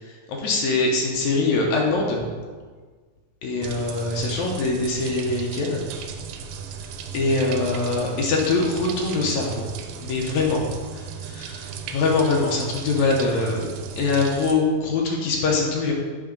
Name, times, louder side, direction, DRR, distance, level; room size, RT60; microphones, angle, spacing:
voice 1, 0.0-2.2 3.4-5.8 7.1-9.7 10.0-10.7 10.9-13.7 14.0-15.9, left 3 dB, 70° left, -1 dB, 1.8 m, -23 dB
sound 1, 3.6-14.5, right 6 dB, 80° right, 2.3 m, -36 dB
8.7 x 3.5 x 5.2 m, 1.5 s
omnidirectional pair, 4.2 m